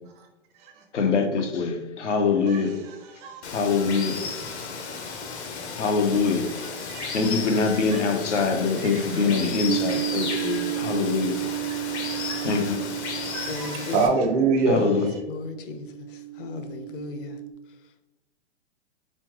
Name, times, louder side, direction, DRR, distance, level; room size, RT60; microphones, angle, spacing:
voice 1, 0.9-2.8 3.5-4.2 5.8-6.4 7.1-11.3 12.4-12.7 14.7-15.1, left 4 dB, 90° left, 5 dB, 0.8 m, -24 dB
voice 2, 2.5-3.4 6.6-7.3 7.7-8.0 8.7-9.3 12.3-12.4 13.3-15.2, right 3 dB, 25° right, 3 dB, 0.4 m, -27 dB
Water, 3.4-14.1, left 5 dB, 70° left, 1.0 m, -34 dB
sound 1, 9.7-17.5, right 15 dB, 80° right, 0.5 m, -33 dB
voice 3, 13.5-14.0 14.8-14.9 15.3-17.4, left 4 dB, 50° left, 8 dB, 0.7 m, -36 dB
4.3 x 3.7 x 3.0 m, 1.0 s
hypercardioid pair, 130°, 35 cm